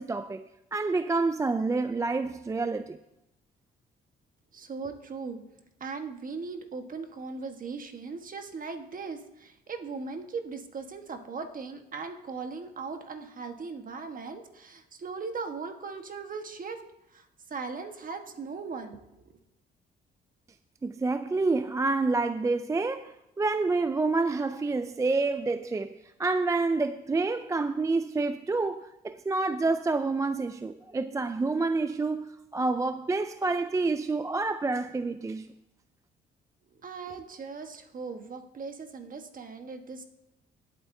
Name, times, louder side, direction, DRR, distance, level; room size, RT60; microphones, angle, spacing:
voice 1, 0.0-3.0 20.8-35.5, right 3 dB, 15° right, 0.3 m, -28 dB
voice 2, 4.5-5.4 5.8-16.8 17.1-19.3 36.7-40.0, right 4 dB, 45° right, 1.3 m, -39 dB
19.5 x 8.0 x 2.7 m
cardioid pair, 90°, 20 cm